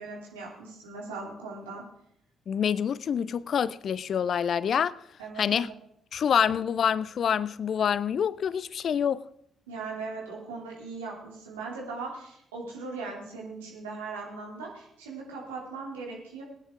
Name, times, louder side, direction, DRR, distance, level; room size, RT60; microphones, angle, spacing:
voice 1, 0.0-1.8 5.2-5.8 9.7-16.4, right 4 dB, 80° right, 3.1 m, -39 dB
voice 2, 2.5-4.9 5.4-5.7 6.1-9.2, left 8 dB, 50° left, 0.4 m, -26 dB
19.5 x 9.7 x 3.8 m
figure-of-eight pair, 40°, 0 cm